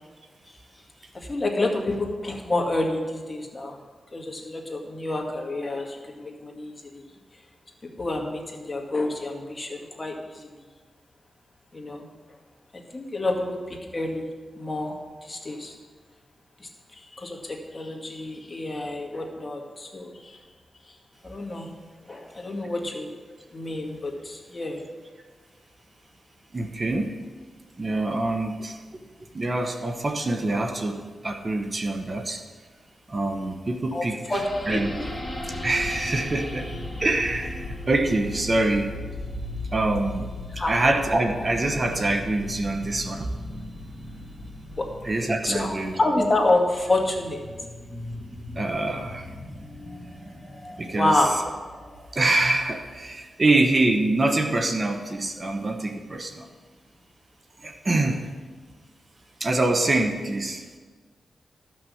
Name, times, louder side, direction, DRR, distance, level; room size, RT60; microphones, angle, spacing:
voice 1, 1.1-3.8 4.1-7.1 7.8-10.5 11.7-12.1 12.7-14.3 14.6-15.8 16.6-20.4 20.8-21.0 21.2-21.7 22.1-23.1 23.5-24.8 33.9-35.1 40.5-40.8 44.8-44.9 45.4-47.4 50.9-51.4, left 2 dB, 30° left, 1 dB, 1.9 m, -28 dB
voice 2, 26.5-27.2 27.8-28.8 29.3-32.4 33.1-34.2 34.7-34.9 35.5-36.7 37.0-39.0 39.7-40.3 40.7-43.3 45.0-45.9 48.6-49.3 50.8-51.2 52.1-56.5 57.6-58.3 59.4-60.6, right 2 dB, 35° right, 5 dB, 1.0 m, -25 dB
sound 1, 34.3-53.0, left 1 dB, 5° left, 2.0 m, -37 dB
13.5 x 6.2 x 6.4 m, 1.4 s
cardioid pair, 90°, 0 cm